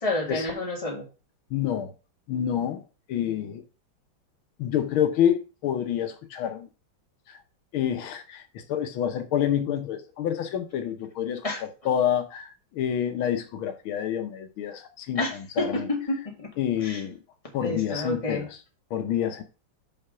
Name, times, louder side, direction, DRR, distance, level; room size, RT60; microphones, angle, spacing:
voice 1, 0.0-1.0 11.4-11.6 15.1-16.5 16.8-17.0 17.6-18.5, left 2 dB, 15° left, 2.0 m, -29 dB
voice 2, 1.5-1.9 2.3-2.8 3.1-3.6 4.6-6.7 7.3-7.4 7.7-8.4 8.7-11.4 11.9-15.2 15.6-15.9 16.6-17.2 17.5-18.5 18.9-19.4, left 10 dB, 80° left, 1.7 m, -27 dB
5.8 x 5.7 x 5.6 m
omnidirectional pair, 2.2 m